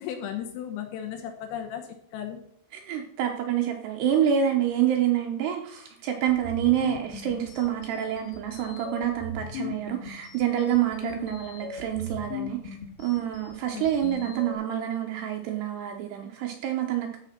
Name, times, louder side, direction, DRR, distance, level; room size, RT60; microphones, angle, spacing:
voice 1, 0.0-2.4 11.0-11.4 13.7-14.3, left 9 dB, 85° left, 5 dB, 3.7 m, -36 dB
voice 2, 2.7-17.2, right 10 dB, 75° right, 3 dB, 2.5 m, -27 dB
sound 1, 6.3-14.5, left 5 dB, 65° left, 3.0 m, -40 dB
13.5 x 4.9 x 5.8 m, 0.68 s
omnidirectional pair, 5.9 m